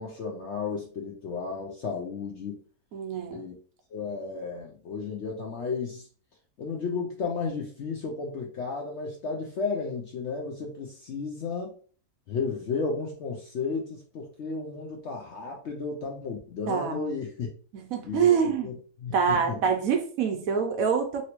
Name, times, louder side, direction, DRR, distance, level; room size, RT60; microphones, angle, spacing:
voice 1, 0.0-2.6 3.3-3.5 3.9-6.1 6.6-11.7 12.3-17.5 18.0-18.7 19.0-19.6, left 4 dB, 65° left, 0 dB, 0.7 m, -33 dB
voice 2, 2.9-3.4 16.7-17.1 17.7-18.7 19.1-21.2, right 6 dB, 70° right, 4 dB, 1.0 m, -25 dB
3.0 x 2.7 x 2.9 m, 0.42 s
omnidirectional pair, 1.7 m